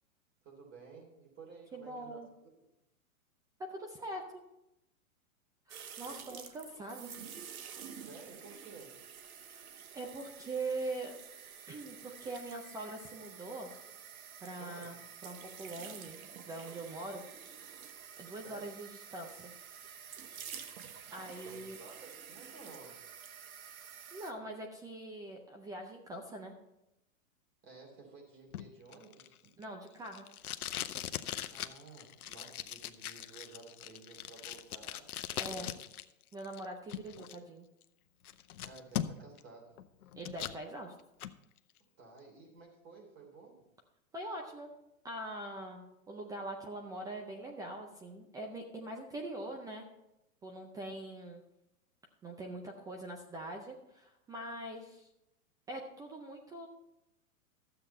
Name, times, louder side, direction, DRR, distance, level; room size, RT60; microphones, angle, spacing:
voice 1, 0.4-2.5 6.0-6.1 8.1-9.0 14.6-14.9 18.3-18.7 21.1-23.1 27.6-29.5 31.5-35.7 38.6-39.8 42.0-43.6, right 4 dB, 30° right, 1 dB, 3.2 m, -54 dB
voice 2, 1.7-2.3 3.7-4.4 5.7-7.1 9.4-9.6 9.9-11.1 11.7-13.7 14.4-16.2 16.5-17.2 18.2-19.5 21.1-21.8 23.6-23.8 24.1-26.6 29.6-30.3 35.4-35.7 36.3-37.7 40.1-40.9 44.1-44.7 45.0-49.8 50.4-51.4 52.2-55.1 55.7-56.7, right 2 dB, 10° right, 2 dB, 0.4 m, -43 dB
sound 1, 5.7-24.3, right 8 dB, 75° right, 1.2 m, -49 dB
Packing tape duct tape, 28.5-36.0 36.3-37.3 37.8-37.9 38.2-39.4 39.8-40.6 41.0-41.3, left 10 dB, 85° left, 0.7 m, -40 dB
12.5 x 7.8 x 4.3 m, 0.88 s
hypercardioid pair, 130°, 43 cm